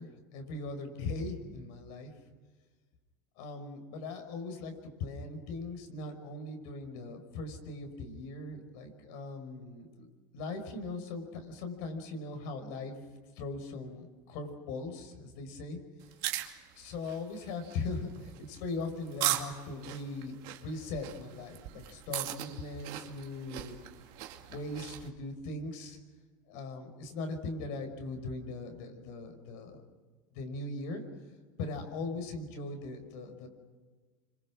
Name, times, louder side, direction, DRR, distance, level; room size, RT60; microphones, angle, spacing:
voice 1, 0.0-2.1 3.4-10.1 10.3-13.0 13.4-15.8 16.8-23.7 24.5-26.0 26.5-29.8 30.3-31.0 31.6-33.5, left 3 dB, 70° left, 6 dB, 5.6 m, -40 dB
sound 1, 16.0-25.1, right 14 dB, 60° right, 2.4 m, -39 dB
28.5 x 25.5 x 6.3 m, 1.4 s
supercardioid pair, 140°, 10 cm